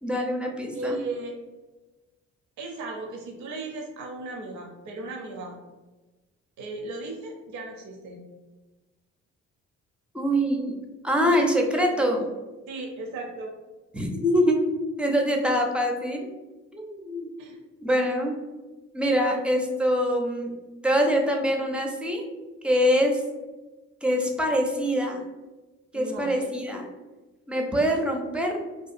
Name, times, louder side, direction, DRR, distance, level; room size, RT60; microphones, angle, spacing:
voice 1, 0.0-1.0 10.1-10.8 11.0-12.2 13.9-14.6 15.0-16.3 16.7-17.3 17.8-18.4 18.9-22.3 22.6-23.2 24.0-25.3 25.9-26.9 27.5-28.6, equal, 5° right, 1 dB, 0.4 m, -24 dB
voice 2, 0.7-1.3 2.6-5.6 6.6-8.2 11.2-11.4 12.2-12.3 12.7-13.5 17.4-17.6 25.9-26.5, right 2 dB, 70° right, 1 dB, 0.5 m, -36 dB
2.7 x 2.2 x 2.4 m, 1.2 s
cardioid pair, 90°, 30 cm